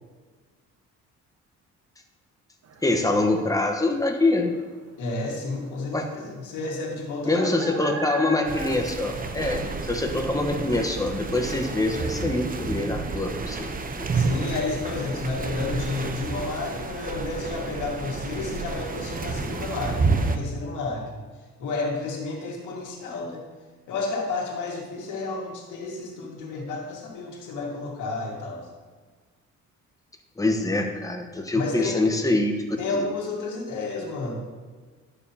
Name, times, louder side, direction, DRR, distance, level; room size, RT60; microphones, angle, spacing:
sound 1, 2.6-15.2, right 3 dB, 55° right, 1.0 m, -44 dB
voice 1, 2.8-4.5 5.9-6.1 7.3-14.1 30.4-32.6 32.9-33.0, left 2 dB, 10° left, 3 dB, 1.1 m, -25 dB
voice 2, 5.0-7.9 14.1-21.2 21.6-23.4 23.9-28.7 31.5-32.1 32.8-34.4, left 3 dB, 85° left, -2 dB, 2.0 m, -31 dB
sound 2, 8.4-20.4, right 4 dB, 30° right, 0.7 m, -30 dB
10.5 x 7.0 x 2.8 m, 1.5 s
cardioid pair, 90°, 30 cm